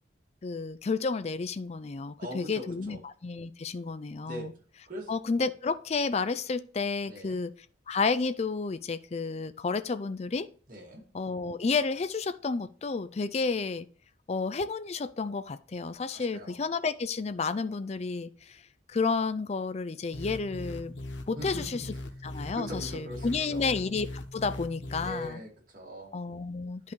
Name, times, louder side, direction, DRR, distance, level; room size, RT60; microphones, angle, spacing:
voice 1, 0.4-4.5 5.1-7.5 7.9-10.5 11.1-13.9 14.3-18.6 18.9-21.0 21.3-21.8 22.2-24.1 24.3-25.4 26.1-26.9, left 4 dB, 35° left, 0.4 m, -31 dB
voice 2, 2.2-3.0 4.2-4.5 4.9-5.1 7.1-7.4 10.7-11.0 16.1-16.5 21.4-21.7 22.5-23.7 25.0-26.1, equal, 50° right, 2.4 m, -41 dB
sound 1, 20.1-25.3, left 1 dB, 85° left, 0.8 m, -40 dB
10.5 x 5.5 x 3.2 m
head